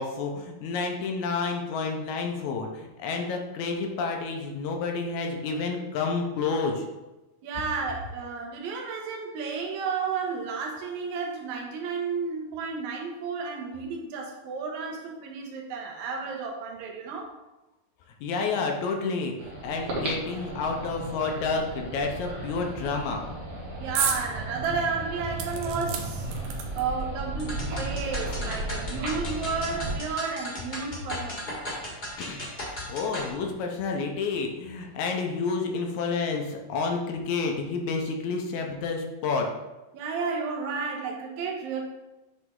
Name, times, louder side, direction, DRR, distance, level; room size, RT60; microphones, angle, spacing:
voice 1, 0.0-6.9 18.2-23.3 32.2-32.5 32.9-39.5, left 4 dB, 75° left, 2 dB, 2.0 m, -30 dB
voice 2, 7.4-17.3 23.8-26.3 26.7-31.6 39.9-41.8, right 5 dB, 70° right, 1 dB, 2.2 m, -32 dB
sound 1, 19.4-30.0, right 1 dB, 55° right, 2.0 m, -35 dB
sound 2, 24.0-24.2 24.6-24.7 25.4-27.0 27.9-28.0 28.3-28.4, right 7 dB, 85° right, 2.3 m, -31 dB
sound 3, 27.4-33.3, left 1 dB, 30° left, 1.0 m, -37 dB
7.8 x 3.3 x 3.7 m, 1.0 s
omnidirectional pair, 3.7 m